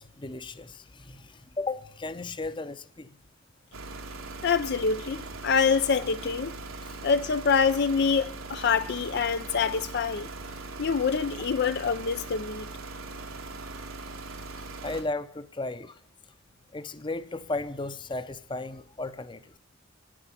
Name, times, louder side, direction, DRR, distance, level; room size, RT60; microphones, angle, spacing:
voice 1, 0.0-3.1 6.8-7.0 10.8-10.9 14.8-16.0 16.7-19.6, left 3 dB, 25° left, 0.7 m, -35 dB
sound 1, 3.7-15.0, right 3 dB, 85° right, 2.1 m, -40 dB
voice 2, 4.4-6.5 7.0-10.3 10.8-12.7, left 5 dB, 55° left, 0.5 m, -26 dB
10.0 x 9.9 x 9.7 m
head